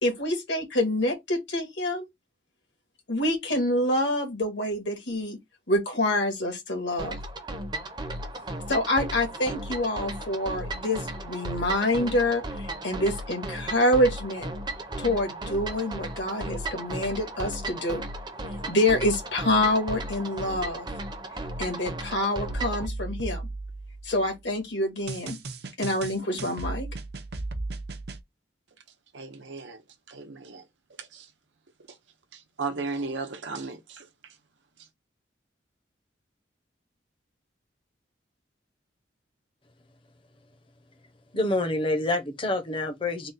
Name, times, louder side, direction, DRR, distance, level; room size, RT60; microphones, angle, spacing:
voice 1, 0.0-2.0 3.1-5.4 5.7-7.2 8.7-14.5 15.0-18.0 18.7-20.9 21.6-23.5 24.0-25.4 25.8-26.9, left 1 dB, 75° left, 1.7 m, -26 dB
sound 1, 7.0-22.9, right 1 dB, 25° right, 0.7 m, -35 dB
sound 2, 22.5-24.3 25.1-28.2, right 2 dB, 60° right, 0.7 m, -35 dB
voice 2, 29.1-29.8 30.1-30.6 31.0-31.3 32.3-34.1, right 4 dB, 90° right, 0.9 m, -35 dB
voice 3, 41.3-43.3, left 2 dB, 30° left, 0.8 m, -27 dB
3.8 x 2.2 x 4.0 m
head